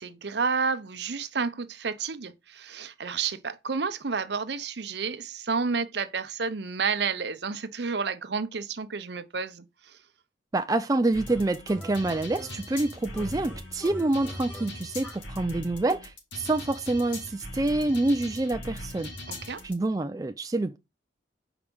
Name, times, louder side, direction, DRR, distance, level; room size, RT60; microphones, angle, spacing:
voice 1, 0.0-10.0 19.3-19.6, right 5 dB, 65° right, 0.7 m, -30 dB
voice 2, 10.5-19.1 19.6-20.8, right 2 dB, 20° right, 0.4 m, -27 dB
sound 1, 11.1-19.7, left 1 dB, 70° left, 2.9 m, -40 dB
sound 2, 11.3-12.8 13.1-15.3, equal, 5° left, 2.1 m, -44 dB
5.3 x 5.0 x 6.0 m
head